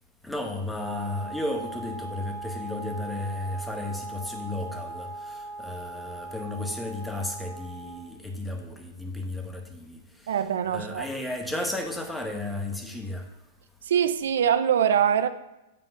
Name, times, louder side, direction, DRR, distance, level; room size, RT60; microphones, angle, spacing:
voice 1, 0.2-10.0 10.2-10.3 10.7-13.2, left 2 dB, 5° left, 4 dB, 1.0 m, -33 dB
Wind instrument woodwind instrument, 0.7-8.1, right 2 dB, 35° left, 2.1 m, -39 dB
voice 2, 10.3-11.1 13.8-15.3, right 8 dB, 75° right, 11 dB, 0.4 m, -23 dB
7.7 x 3.6 x 5.8 m, 0.95 s
hypercardioid pair, 130°, 0 cm